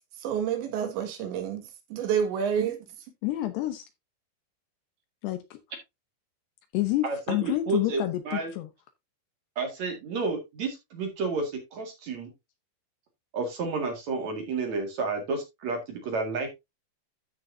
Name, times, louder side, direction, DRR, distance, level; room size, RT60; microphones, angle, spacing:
voice 1, 0.2-1.6 1.9-2.8, right 8 dB, 75° right, 4.0 m, -28 dB
voice 2, 3.2-3.8 5.2-5.6 6.7-8.7, left 16 dB, 75° left, 2.7 m, -28 dB
voice 3, 7.0-8.5 9.6-12.3 13.3-16.5, right 3 dB, 50° right, 2.5 m, -31 dB
13.5 x 6.3 x 2.6 m
omnidirectional pair, 5.3 m